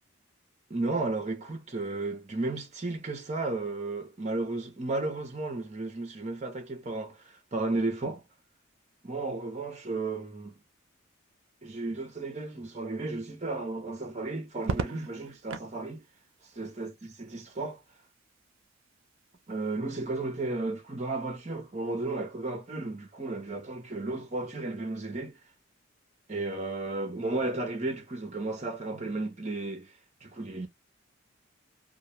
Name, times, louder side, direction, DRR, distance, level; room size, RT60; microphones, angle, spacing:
voice 1, 0.7-8.2 9.0-10.5 11.6-16.0 16.6-16.9 17.2-17.8 19.5-25.4 26.3-29.9 30.2-30.7, right 2 dB, 35° right, 0.7 m, -33 dB
Crackle, 14.6-15.8 17.3-17.9, right 5 dB, 80° right, 0.4 m, -35 dB
2.2 x 2.1 x 2.9 m
head